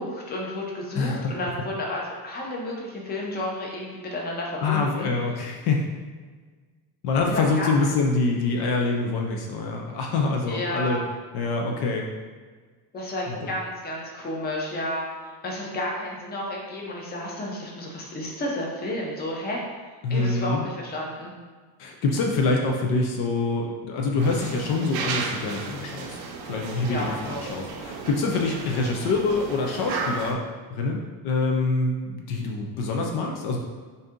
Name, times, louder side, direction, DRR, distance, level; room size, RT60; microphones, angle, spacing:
voice 1, 0.0-5.1 7.2-7.9 10.5-11.0 12.9-15.0 15.4-19.6 20.1-21.3 26.9-27.4, left 1 dB, 25° left, -2 dB, 0.6 m, -31 dB
voice 2, 1.0-1.3 4.6-5.8 7.0-11.0 11.3-12.1 13.3-13.5 20.0-20.6 21.8-26.2 26.4-30.4 30.7-33.6, left 3 dB, 60° left, 1 dB, 0.6 m, -25 dB
sound 1, 24.2-30.3, right 4 dB, 60° right, 0.6 m, -34 dB
3.9 x 2.7 x 3.6 m, 1.5 s
cardioid pair, 155°, 42 cm